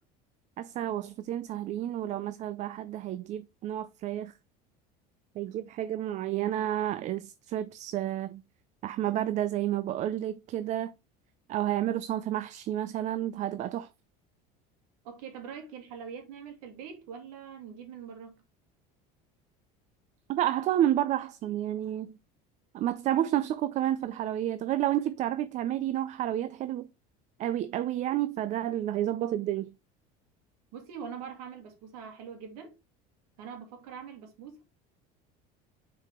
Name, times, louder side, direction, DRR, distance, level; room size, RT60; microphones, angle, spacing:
voice 1, 0.6-4.3 5.4-8.4 8.8-10.9 11.5-13.9 20.3-22.2 22.7-26.9 27.4-29.7, right 12 dB, 40° right, 0.4 m, -30 dB
voice 2, 15.0-18.4 30.7-32.8 33.4-34.6, right 7 dB, 90° right, 2.4 m, -43 dB
6.6 x 4.7 x 3.7 m
cardioid pair, 140°, 19 cm